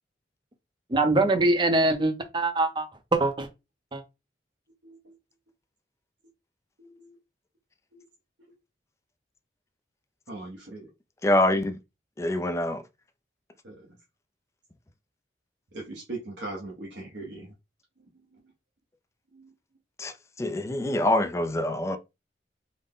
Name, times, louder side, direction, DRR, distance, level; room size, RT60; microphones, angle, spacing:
voice 1, 0.9-3.5 3.9-4.0, right 2 dB, 25° right, 0.6 m, -23 dB
voice 2, 6.8-7.2 7.9-8.0 10.3-10.9 13.6-13.8 15.7-17.5 19.3-19.5, right 2 dB, 80° right, 0.9 m, -39 dB
voice 3, 11.2-11.7 12.2-12.8 20.0-20.1 20.4-22.0, left 1 dB, 15° left, 0.3 m, -25 dB
3.9 x 2.1 x 3.5 m
head